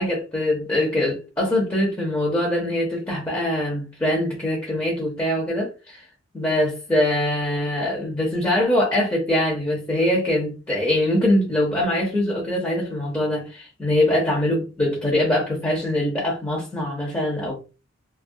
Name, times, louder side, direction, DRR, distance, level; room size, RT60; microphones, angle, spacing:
voice 1, 0.0-6.0 6.3-17.6, left 1 dB, 15° left, 0.6 m, -23 dB
2.3 x 2.1 x 2.6 m
head